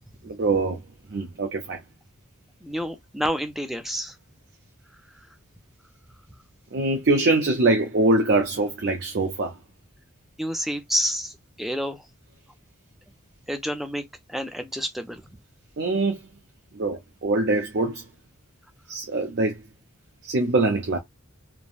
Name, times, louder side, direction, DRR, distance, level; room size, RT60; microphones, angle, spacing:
voice 1, 0.2-0.8 1.1-1.8 6.7-9.5 15.8-16.2 16.7-18.0 18.9-19.6 20.2-21.0, right 2 dB, 50° right, 0.6 m, -23 dB
voice 2, 2.6-4.2 10.4-12.1 13.5-14.0 14.3-15.2, equal, ahead, 0.4 m, -29 dB
3.3 x 2.1 x 2.3 m
head